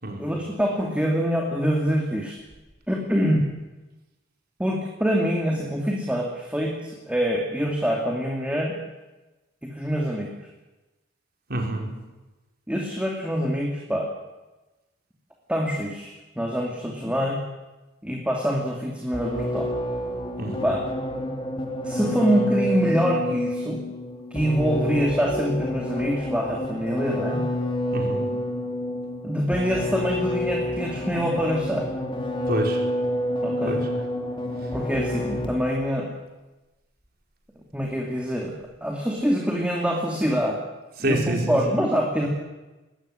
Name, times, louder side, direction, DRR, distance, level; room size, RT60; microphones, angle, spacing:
voice 1, 0.1-2.4 2.9-3.5 4.6-8.7 9.6-10.3 12.7-14.1 15.5-17.4 18.0-19.7 20.6-20.9 21.8-23.8 24.3-27.4 29.2-31.9 33.4-33.8 34.7-36.1 37.7-38.5 38.8-40.6 41.0-42.3, equal, 5° right, -1 dB, 2.7 m, -25 dB
voice 2, 11.5-11.9 20.4-20.7 27.9-28.3 32.5-32.8 33.6-33.8 41.0-41.8, right 1 dB, 55° right, 2 dB, 5.0 m, -27 dB
sound 1, 19.1-35.8, left 1 dB, 25° left, 2.9 m, -28 dB
21.0 x 17.0 x 10.0 m, 1.1 s
head